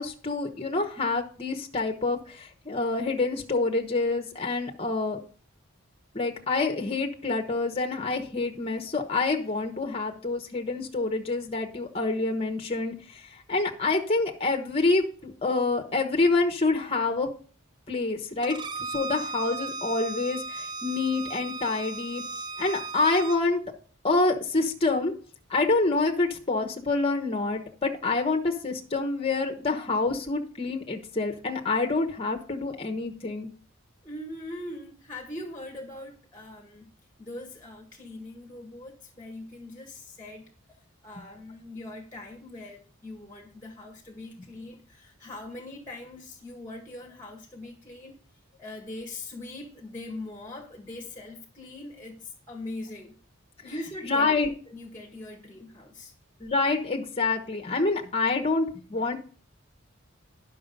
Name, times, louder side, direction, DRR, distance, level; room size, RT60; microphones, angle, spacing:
voice 1, 0.0-5.2 6.1-17.3 17.9-22.2 22.6-23.6 24.0-25.1 25.5-33.5 54.0-54.5 56.4-59.2, left 3 dB, 25° left, 4 dB, 1.2 m, -27 dB
Bowed string instrument, 18.4-23.4, right 3 dB, 20° right, 0.4 m, -36 dB
voice 2, 34.0-36.9 37.2-40.5 41.0-48.2 48.6-53.2 53.6-54.3 54.7-56.1, left 2 dB, 10° left, 1 dB, 1.7 m, -41 dB
10.5 x 6.1 x 5.4 m, 0.41 s
head